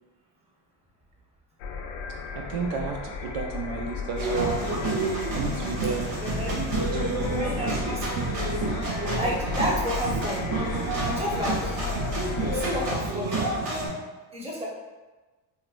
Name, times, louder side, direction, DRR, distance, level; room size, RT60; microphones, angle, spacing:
sound 1, 1.6-12.9, left 5 dB, 75° left, 0.7 m, -35 dB
voice 1, 2.3-4.6 5.3-7.3 8.6-8.9 10.8-10.9, right 6 dB, 75° right, 1 dB, 0.7 m, -33 dB
sound 2, 4.2-13.9, right 2 dB, 45° right, 1.4 m, -29 dB
voice 2, 6.2-6.5 7.3-8.5 9.2-10.5 11.0-11.8 12.4-13.5 14.3-14.7, equal, 10° right, -4 dB, 1.0 m, -32 dB
4.6 x 2.2 x 2.5 m, 1.2 s
supercardioid pair, 90°, 50 cm